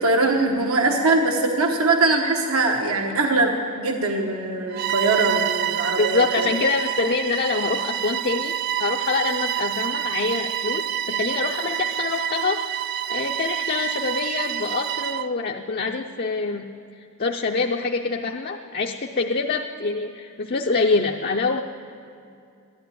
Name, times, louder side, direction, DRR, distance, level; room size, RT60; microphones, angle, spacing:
voice 1, 0.0-6.5, right 2 dB, 75° right, 3 dB, 1.1 m, -22 dB
Bowed string instrument, 4.7-15.3, right 11 dB, 45° right, 0.3 m, -27 dB
voice 2, 6.0-8.5 8.8-12.7 13.1-16.7 17.2-21.6, left 4 dB, 40° left, 2 dB, 0.5 m, -25 dB
12.5 x 12.0 x 9.3 m, 2.5 s
head